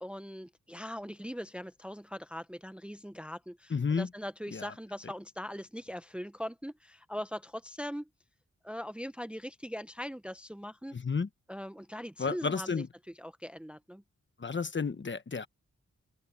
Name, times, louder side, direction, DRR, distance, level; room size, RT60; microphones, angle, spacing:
voice 1, 0.0-8.1 8.6-10.9 11.5-12.8 13.2-14.0, equal, 5° right, 0.8 m, -41 dB
voice 2, 3.7-4.1 4.5-4.7 10.9-11.3 12.2-12.9 14.4-15.5, left 5 dB, 40° left, 1.2 m, -31 dB
wide cardioid pair, 95°, 29 cm